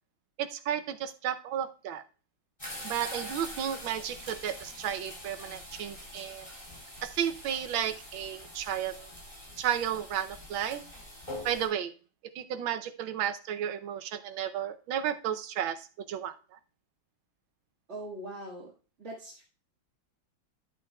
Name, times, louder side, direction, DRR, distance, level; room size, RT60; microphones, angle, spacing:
voice 1, 0.4-2.0 2.8-6.5 7.0-9.1 9.6-10.8 11.4-11.9 12.3-16.3, right 10 dB, 85° right, 10 dB, 1.5 m, -33 dB
sound 1, 2.6-11.7, left 1 dB, 15° left, 3.8 m, -44 dB
voice 2, 17.9-18.7 19.0-19.4, right 1 dB, 35° right, -7 dB, 2.0 m, -41 dB
12.0 x 8.4 x 2.3 m, 0.37 s
omnidirectional pair, 2.1 m